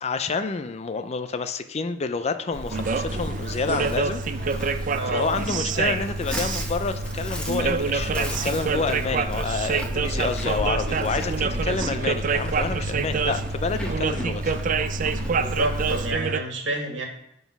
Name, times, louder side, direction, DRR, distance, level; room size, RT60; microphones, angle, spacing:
voice 1, 0.0-14.5, left 4 dB, 35° left, 10 dB, 0.4 m, -29 dB
Livestock farm animals working animals, 2.5-16.1, equal, 5° left, 1.1 m, -33 dB
sound 1, 2.7-16.4, right 4 dB, 45° right, 0.4 m, -27 dB
voice 2, 4.9-5.3 9.0-9.2 11.4-11.6 15.3-17.1, right 1 dB, 80° right, 1 dB, 1.8 m, -29 dB
9.3 x 3.9 x 6.0 m, 0.78 s
head